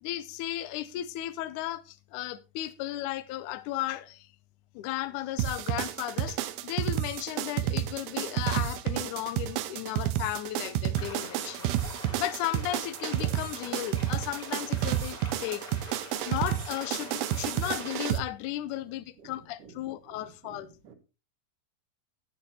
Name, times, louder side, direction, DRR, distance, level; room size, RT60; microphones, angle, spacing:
voice 1, 0.0-4.3 4.7-11.7 12.2-15.6 16.3-20.7, left 14 dB, 80° left, 1.8 m, -35 dB
sound 1, 5.4-18.2, right 13 dB, 85° right, 2.6 m, -30 dB
sound 2, 10.9-18.0, left 1 dB, 15° left, 2.2 m, -44 dB
voice 2, 19.2-20.9, right 7 dB, 65° right, 2.7 m, -53 dB
19.5 x 6.6 x 2.8 m
omnidirectional pair, 4.3 m